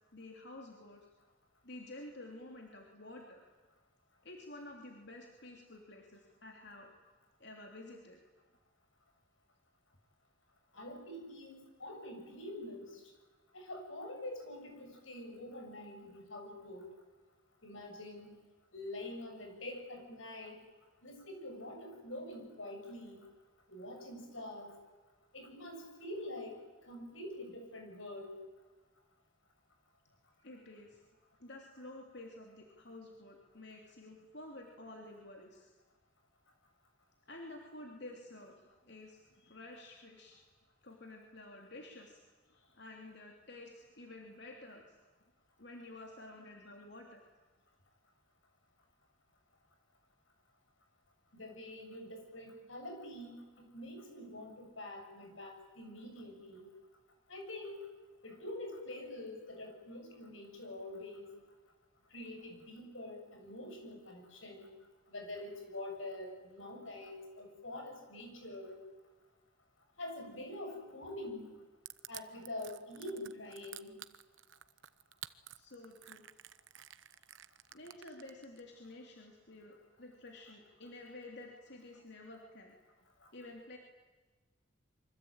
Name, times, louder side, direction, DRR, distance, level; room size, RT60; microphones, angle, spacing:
voice 1, 0.1-1.0 1.6-3.4 4.2-6.9 7.4-8.2 30.4-31.0 31.4-35.7 37.3-38.5 38.8-40.4 40.8-42.2 42.4-45.0 45.6-47.2 75.5-76.2 76.9-77.1 77.7-82.8 83.3-83.8, left 2 dB, 60° left, 1 dB, 3.2 m, -51 dB
voice 2, 10.7-13.0 13.5-16.9 17.6-18.3 18.7-20.6 21.0-23.2 23.7-24.7 25.3-28.4 51.3-56.7 57.3-57.8 58.2-61.3 62.1-64.7 65.1-68.8 70.0-71.5 72.1-73.9, left 1 dB, 85° left, 4 dB, 7.5 m, -46 dB
Crushing, 71.9-78.6, right 13 dB, 75° right, 0.9 m, -51 dB
27.0 x 24.5 x 9.0 m, 1.3 s
head